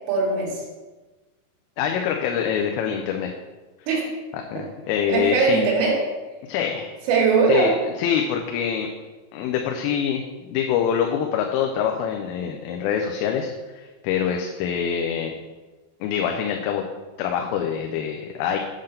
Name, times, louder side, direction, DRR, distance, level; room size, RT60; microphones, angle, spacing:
voice 1, 0.1-0.6 3.9-4.1 5.1-6.0 7.1-7.7, right 4 dB, 80° right, -3 dB, 4.0 m, -20 dB
voice 2, 1.8-3.3 4.5-5.7 6.5-6.9 7.5-8.9 9.3-10.2 10.5-13.5 13.8-15.3 16.0-16.8 17.2-18.6, left 8 dB, 85° left, 2 dB, 3.2 m, -25 dB
8.7 x 3.8 x 6.6 m, 1.2 s
omnidirectional pair, 5.7 m